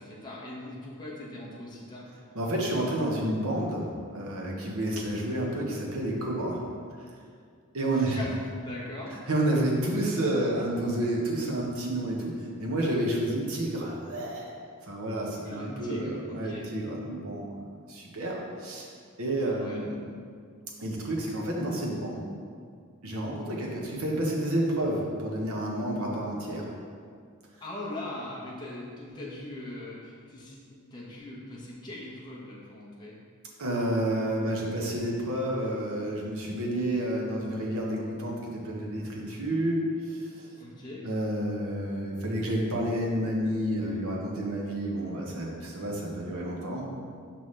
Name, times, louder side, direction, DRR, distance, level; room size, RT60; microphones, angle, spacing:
voice 1, 0.0-2.1 7.9-9.1 15.4-16.7 19.5-19.9 27.6-33.1 40.6-41.1, left 1 dB, 20° left, -5 dB, 1.0 m, -40 dB
voice 2, 2.3-6.6 7.7-8.2 9.3-12.3 12.6-14.5 14.9-16.1 16.3-17.5 17.9-18.8 19.2-20.0 20.8-22.2 23.0-26.7 33.6-40.5 41.0-46.9, right 1 dB, 75° right, -2 dB, 1.1 m, -30 dB
5.9 x 5.7 x 3.3 m, 2.1 s
head